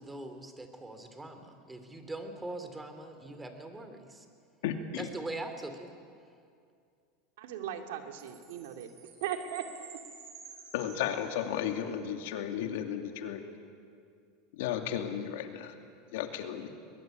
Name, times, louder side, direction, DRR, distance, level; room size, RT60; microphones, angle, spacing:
voice 1, 0.0-4.3 5.0-5.9, right 2 dB, 10° right, 7 dB, 2.9 m, -42 dB
voice 2, 4.6-5.1 10.7-13.4 14.6-15.7 16.1-16.7, left 9 dB, 75° left, 5 dB, 2.5 m, -34 dB
voice 3, 7.4-8.9 9.2-10.0, right 9 dB, 80° right, 5 dB, 2.4 m, -38 dB
Chime, 8.2-11.9, right 6 dB, 50° right, 6.5 m, -52 dB
22.5 x 21.5 x 9.2 m, 2.3 s
supercardioid pair, 125°, 0 cm